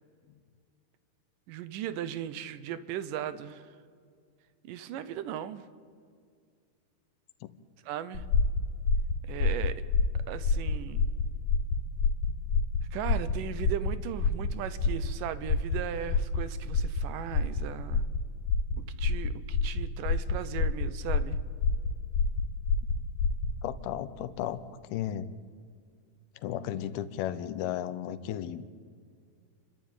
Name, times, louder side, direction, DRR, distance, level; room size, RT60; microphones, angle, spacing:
voice 1, 1.5-3.8 4.6-5.7 7.8-8.3 9.2-9.8 10.3-11.1 12.9-18.0 18.8-21.4, right 10 dB, 75° right, 14 dB, 2.2 m, -37 dB
sound 1, 8.1-23.6, left 4 dB, 70° left, 4.5 m, -28 dB
voice 2, 23.6-24.6 24.9-25.3 26.4-28.6, left 11 dB, 85° left, 14 dB, 2.8 m, -34 dB
28.5 x 12.0 x 9.0 m, 2.1 s
omnidirectional pair, 4.4 m